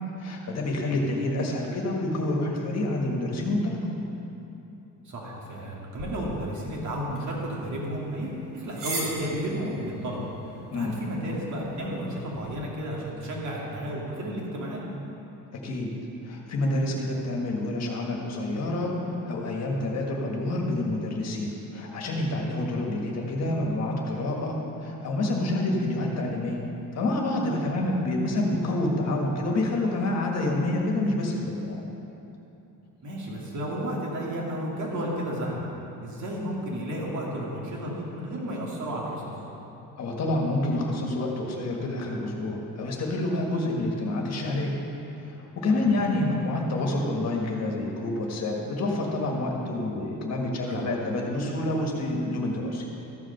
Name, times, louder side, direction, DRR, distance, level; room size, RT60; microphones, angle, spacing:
voice 1, 0.2-3.9 10.7-10.9 15.5-15.9 16.2-26.6 26.9-31.8 40.0-44.7 45.2-52.8, left 2 dB, 50° left, 0 dB, 1.6 m, -28 dB
voice 2, 5.0-14.8 27.6-27.8 33.0-35.7 36.0-39.3 45.8-45.9 50.7-50.9, equal, 60° right, -3 dB, 2.3 m, -32 dB
sound 1, 5.9-12.4, right 1 dB, 75° right, 2.5 m, -41 dB
14.0 x 5.0 x 6.6 m, 2.9 s
cardioid pair, 140°, 33 cm